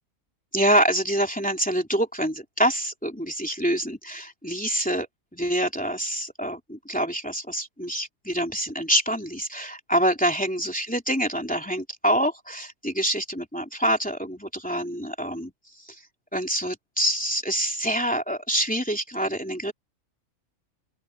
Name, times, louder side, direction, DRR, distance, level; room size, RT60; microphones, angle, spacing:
voice 1, 0.5-5.1 5.3-15.5 15.8-16.0 16.3-19.7, equal, 5° left, 2.9 m, -26 dB
open air
omnidirectional pair, 1.5 m